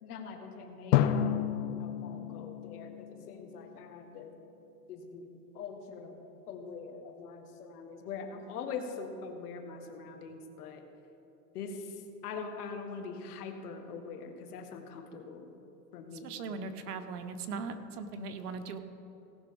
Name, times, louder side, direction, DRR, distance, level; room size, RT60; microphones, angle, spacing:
voice 1, 0.0-1.4 1.8-4.4 4.9-5.3 5.5-6.2 6.5-10.8 11.5-15.6 15.9-16.4, left 5 dB, 70° left, 5 dB, 1.7 m, -43 dB
Drum, 0.9-3.8, left 10 dB, 50° left, 0.6 m, -31 dB
voice 2, 16.2-18.8, right 4 dB, 70° right, 8 dB, 1.2 m, -39 dB
17.5 x 6.1 x 5.3 m, 2.9 s
supercardioid pair, 145°, 47 cm